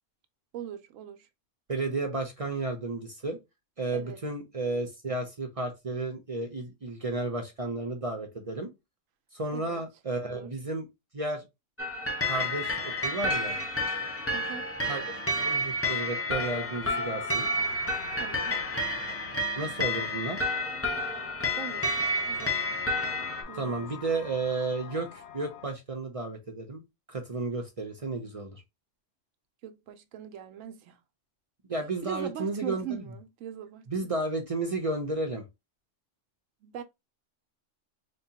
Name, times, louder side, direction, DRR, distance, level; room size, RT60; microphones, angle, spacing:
voice 1, 0.5-1.3 3.9-4.2 9.5-9.8 10.2-10.5 14.3-15.1 18.1-18.6 21.6-22.0 22.3-22.6 23.5-23.9 29.6-31.0 32.0-34.1 36.6-36.8, right 9 dB, 90° right, 1.0 m, -41 dB
voice 2, 1.7-3.4 3.8-8.7 9.3-10.9 11.1-11.4 12.2-13.6 14.9-17.5 19.6-20.5 23.5-26.8 27.1-28.6 31.7-33.0 33.9-35.4, right 2 dB, 40° right, 0.5 m, -33 dB
sound 1, 11.8-23.4, left 1 dB, 20° left, 0.4 m, -30 dB
sound 2, 17.6-25.7, left 7 dB, 60° left, 0.8 m, -47 dB
4.1 x 2.2 x 2.7 m
omnidirectional pair, 1.3 m